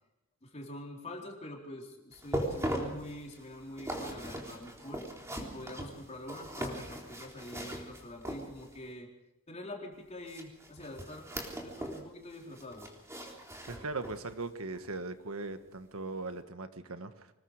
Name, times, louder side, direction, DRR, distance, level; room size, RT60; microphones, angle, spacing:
voice 1, 0.4-5.0 5.4-9.1 9.5-12.9, left 1 dB, 30° left, -1 dB, 4.2 m, -45 dB
sound 1, 2.1-8.9 10.2-12.1 12.3-14.3 14.7-14.9 15.4-15.5, right 1 dB, 15° right, 3.7 m, -40 dB
voice 2, 13.7-17.3, right 3 dB, 75° right, 9 dB, 1.6 m, -39 dB
26.0 x 21.0 x 5.0 m, 0.90 s
head